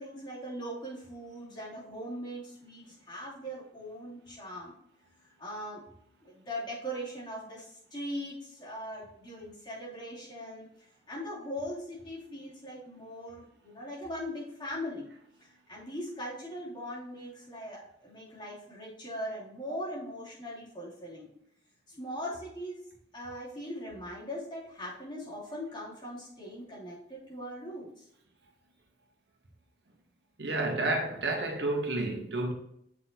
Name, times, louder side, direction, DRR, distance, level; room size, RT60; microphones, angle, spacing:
voice 1, 0.0-4.7 5.4-5.8 6.2-10.7 11.1-15.1 15.4-21.3 21.9-22.8 23.1-28.1, equal, 25° left, 3.1 m, -40 dB
voice 2, 30.4-32.5, right 2 dB, 85° right, 1.3 m, -30 dB
8.5 x 5.9 x 2.9 m
head